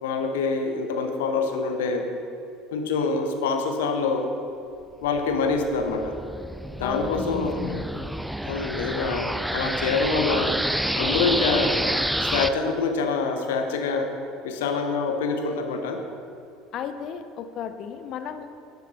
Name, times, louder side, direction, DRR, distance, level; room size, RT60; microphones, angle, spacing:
voice 1, 0.0-2.1 2.7-4.3 5.0-6.2 6.8-7.6 8.4-10.6 10.9-11.8 12.2-14.1 14.4-16.0, left 4 dB, 70° left, 5 dB, 1.0 m, -25 dB
sound 1, 5.2-12.5, right 1 dB, 5° right, 0.4 m, -28 dB
voice 2, 6.8-8.1 16.7-18.5, left 8 dB, 50° left, 9 dB, 0.6 m, -34 dB
11.5 x 6.8 x 4.1 m, 2.5 s
hypercardioid pair, 70°, 0 cm